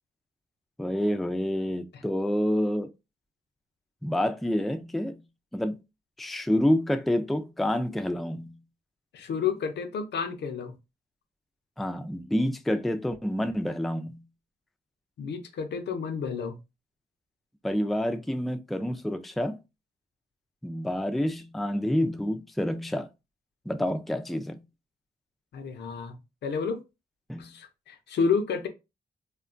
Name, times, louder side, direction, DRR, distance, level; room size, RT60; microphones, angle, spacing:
voice 1, 0.8-2.9 4.0-5.2 5.5-5.8 6.2-8.6 11.8-14.2 17.6-19.6 20.6-23.1 23.7-24.6 27.3-27.5, left 1 dB, ahead, 0.3 m, -28 dB
voice 2, 9.1-10.7 15.2-16.6 25.5-26.8 27.4-28.7, left 6 dB, 75° left, 0.6 m, -30 dB
2.8 x 2.2 x 2.5 m
cardioid pair, 70°, 18 cm